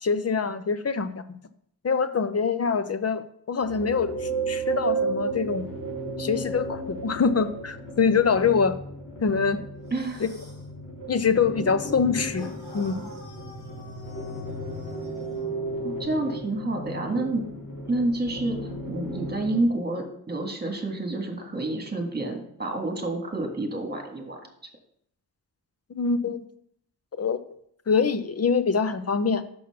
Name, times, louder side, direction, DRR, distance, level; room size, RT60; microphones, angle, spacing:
voice 1, 0.0-1.2 1.8-5.7 6.2-8.8 9.2-9.6 10.2-10.3 11.1-13.0 26.0-26.4 27.2-27.4 27.9-29.4, left 5 dB, 40° left, 11 dB, 0.6 m, -24 dB
sound 1, 3.6-19.6, right 2 dB, 60° left, 3.0 m, -34 dB
sound 2, 9.8-10.7 12.3-15.5, left 1 dB, 85° left, 2.5 m, -50 dB
voice 2, 9.9-10.2 15.8-17.4 17.9-24.4, right 2 dB, 25° right, 2 dB, 1.7 m, -29 dB
6.2 x 5.7 x 5.9 m, 0.68 s
wide cardioid pair, 115°, 38 cm